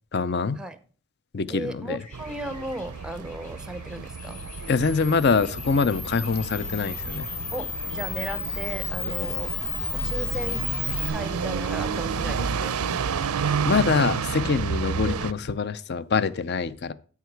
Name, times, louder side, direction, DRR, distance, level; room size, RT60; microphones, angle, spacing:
voice 1, 0.1-0.6 1.3-2.0 4.7-7.3 9.1-9.3 13.6-16.9, left 5 dB, 50° left, 0.5 m, -24 dB
voice 2, 1.5-4.4 7.5-9.6 9.9-10.7 11.1-12.8, right 1 dB, 5° right, 0.6 m, -36 dB
sound 1, 2.0-9.9 10.4-13.9, left 3 dB, 35° left, 3.8 m, -51 dB
sound 2, 2.1-15.3, right 5 dB, 80° right, 0.5 m, -31 dB
Camera, 4.1-11.1, left 6 dB, 70° left, 1.7 m, -33 dB
13.0 x 4.7 x 4.6 m
head